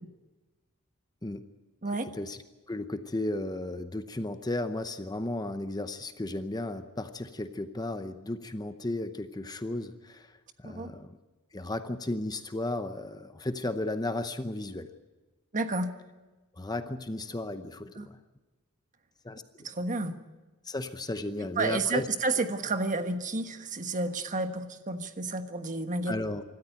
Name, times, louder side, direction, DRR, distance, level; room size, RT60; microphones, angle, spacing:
voice 1, 2.7-11.2 11.5-14.9 16.5-18.2 19.2-19.7 20.6-22.1 26.1-26.4, left 2 dB, 20° left, 9 dB, 0.8 m, -34 dB
voice 2, 15.5-15.9 18.0-18.1 19.6-20.2 21.6-26.1, right 3 dB, 35° right, 8 dB, 1.3 m, -31 dB
25.5 x 13.5 x 9.0 m, 1.2 s
head